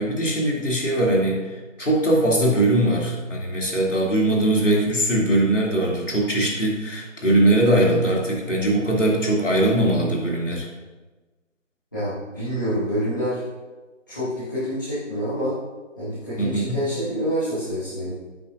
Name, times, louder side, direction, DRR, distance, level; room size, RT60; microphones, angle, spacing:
voice 1, 0.0-1.4 1.8-10.7 16.4-16.7, right 1 dB, 70° left, -3 dB, 3.0 m, -21 dB
voice 2, 11.9-13.4 14.1-15.5 16.0-18.1, equal, 15° left, -17 dB, 1.7 m, -27 dB
11.0 x 8.3 x 2.7 m, 1.2 s
figure-of-eight pair, 170°, 38 cm